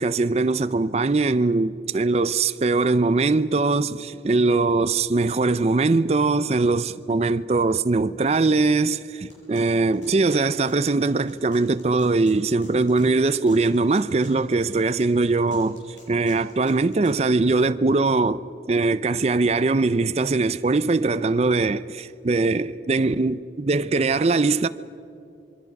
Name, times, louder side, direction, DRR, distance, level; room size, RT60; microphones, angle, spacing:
voice 1, 0.0-15.8 16.1-18.4 18.7-24.7, right 3 dB, 35° right, 0.4 m, -21 dB
sound 1, 9.3-17.2, left 2 dB, 85° left, 6.6 m, -51 dB
26.5 x 21.5 x 5.9 m
head